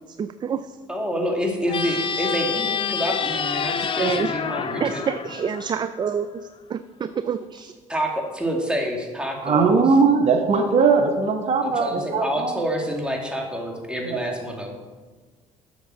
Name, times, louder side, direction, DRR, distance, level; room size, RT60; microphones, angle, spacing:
voice 1, 0.2-0.7 4.0-4.3 4.8-6.3 6.7-7.7, right 7 dB, 30° right, 12 dB, 0.4 m, -27 dB
voice 2, 0.9-5.1 7.9-9.8 11.6-14.8, equal, 5° right, 1 dB, 2.4 m, -27 dB
sound 1, 1.7-6.1, left 6 dB, 35° left, 0.7 m, -27 dB
voice 3, 9.4-12.6 14.1-14.2, right 4 dB, 50° right, 5 dB, 1.0 m, -19 dB
7.1 x 6.5 x 6.2 m, 1.4 s
supercardioid pair, 75°, 15 cm